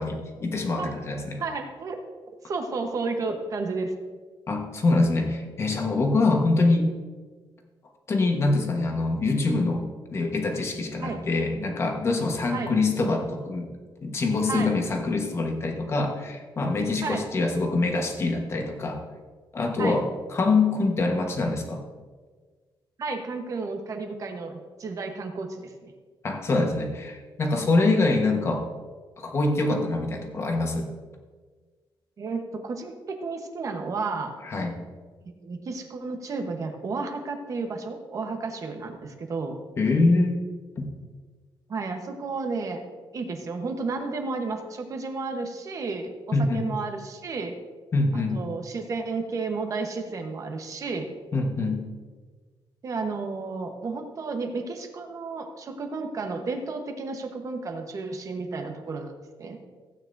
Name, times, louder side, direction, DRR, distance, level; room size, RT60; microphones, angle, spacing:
voice 1, 0.0-1.4 4.5-6.9 8.1-9.8 10.1-13.7 14.0-19.0 19.5-20.1 20.3-21.8 26.2-28.6 29.2-30.9 34.4-34.7 39.8-40.4 40.8-40.9 46.3-46.7 47.9-48.4 51.3-51.8, left 3 dB, 30° left, 3 dB, 1.2 m, -24 dB
voice 2, 1.4-2.0 2.4-3.9 11.0-11.2 12.5-12.7 14.5-14.8 17.0-17.2 19.8-20.0 23.0-25.9 32.2-34.3 35.4-39.6 41.7-42.8 43.1-47.6 48.1-51.1 52.8-59.1 59.4-59.6, right 4 dB, 40° right, 4 dB, 1.1 m, -32 dB
16.0 x 8.8 x 2.6 m, 1.5 s
cardioid pair, 165°, 9 cm